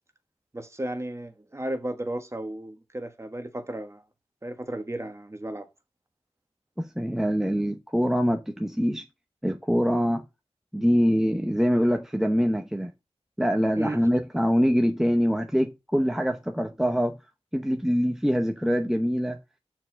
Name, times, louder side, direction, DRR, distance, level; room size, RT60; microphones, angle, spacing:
voice 1, 0.5-4.0 4.4-5.7 13.7-14.0, right 1 dB, 25° right, 1.4 m, -34 dB
voice 2, 6.8-9.0 9.4-10.2 10.7-12.9 13.4-17.2 17.5-19.4, equal, 5° right, 0.8 m, -24 dB
6.6 x 4.6 x 6.2 m
wide cardioid pair, 65°, 11 cm